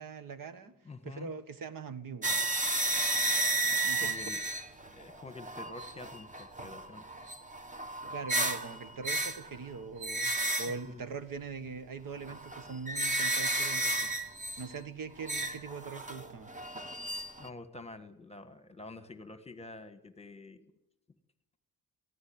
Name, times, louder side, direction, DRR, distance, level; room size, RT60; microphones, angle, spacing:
voice 1, 0.0-0.7 1.0-2.4 3.7-4.2 8.1-10.3 10.6-14.1 14.6-16.5, right 5 dB, 60° right, 1.5 m, -42 dB
voice 2, 0.8-1.3 4.0-4.4 4.9-7.0 10.7-11.0 17.4-20.6, left 3 dB, 15° left, 1.4 m, -47 dB
sound 1, 2.2-9.6 10.0-10.8 12.2-14.8 15.2-17.5, right 2 dB, 20° right, 1.3 m, -33 dB
24.0 x 15.5 x 8.7 m
wide cardioid pair, 150°, 38 cm